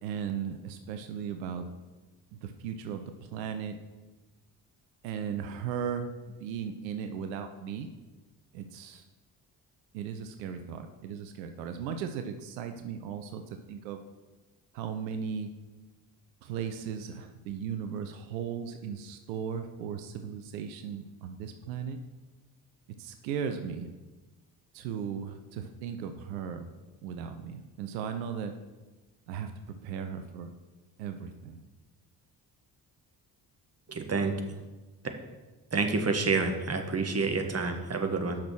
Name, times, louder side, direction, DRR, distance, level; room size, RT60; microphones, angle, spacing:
voice 1, 0.0-1.7 2.4-3.8 5.0-6.1 6.4-7.9 8.5-9.0 9.9-14.0 14.7-15.5 16.4-22.0 23.0-23.9 24.7-26.7 27.0-28.5 29.3-29.5 29.8-30.5 31.0-31.6, right 7 dB, 80° right, 7 dB, 0.7 m, -36 dB
voice 2, 33.9-34.3 35.7-38.4, right 4 dB, 30° right, 5 dB, 1.5 m, -28 dB
8.6 x 6.1 x 6.2 m, 1.2 s
hypercardioid pair, 40°, 49 cm